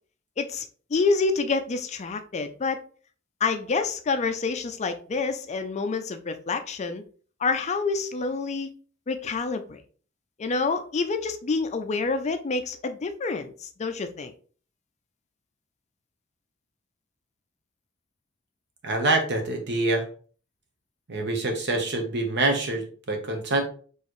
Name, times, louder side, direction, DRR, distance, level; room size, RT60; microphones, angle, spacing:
voice 1, 0.9-2.8 3.4-7.0 7.4-8.7 9.1-9.8 10.4-14.3, left 4 dB, 35° left, 0.4 m, -27 dB
voice 2, 18.8-20.0 21.1-23.6, right 2 dB, 55° right, 1.0 m, -25 dB
4.6 x 3.1 x 3.1 m
head